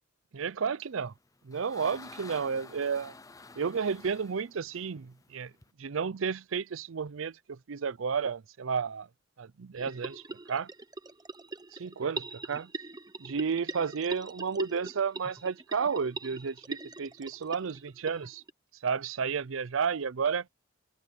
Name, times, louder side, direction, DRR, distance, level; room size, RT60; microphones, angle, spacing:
voice 1, 0.3-1.1 1.4-3.1 3.6-5.5 5.8-9.1 9.4-10.2 10.5-10.7 11.7-12.7 13.2-18.4 18.8-20.5, right 6 dB, 90° right, 0.5 m, -32 dB
sound 1, 1.0-5.7, left 3 dB, 15° left, 0.6 m, -50 dB
sound 2, 9.8-18.5, right 3 dB, 20° right, 0.9 m, -42 dB
open air
head